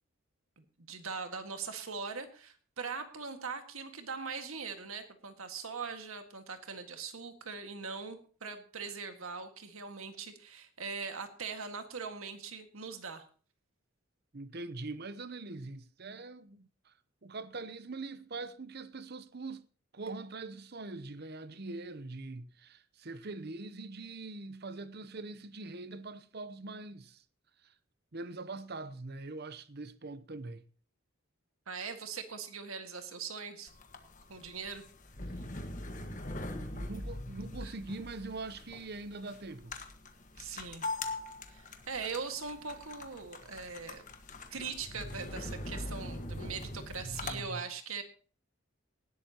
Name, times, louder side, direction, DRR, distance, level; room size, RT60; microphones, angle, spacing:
voice 1, 0.6-13.2 31.7-33.7 34.3-34.8 37.6-37.7 40.3-40.8 41.5-44.0 44.5-48.0, right 5 dB, 80° right, 1.8 m, -41 dB
voice 2, 14.3-16.9 17.2-19.7 19.9-27.2 27.6-27.7 28.1-30.6 36.7-39.7 47.0-47.6, right 3 dB, 50° right, 0.8 m, -43 dB
sound 1, 33.7-47.4, left 2 dB, 35° left, 1.5 m, -42 dB
18.5 x 12.0 x 2.9 m
head